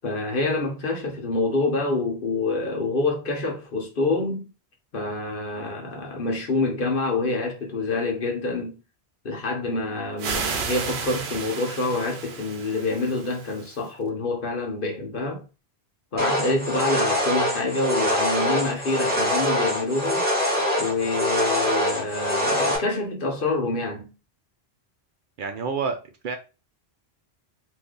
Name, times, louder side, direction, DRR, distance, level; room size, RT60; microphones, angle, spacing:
voice 1, 0.0-4.5 4.9-8.8 9.2-15.4 16.1-20.3 20.8-24.1, left 2 dB, 60° left, 1.0 m, -27 dB
sound 1, 10.2-13.9, right 5 dB, 80° right, 0.9 m, -32 dB
sound 2, 16.2-22.8, equal, 10° right, 1.3 m, -24 dB
voice 2, 25.4-26.0 26.2-26.4, right 5 dB, 60° right, 0.6 m, -27 dB
2.6 x 2.6 x 3.6 m
omnidirectional pair, 1.1 m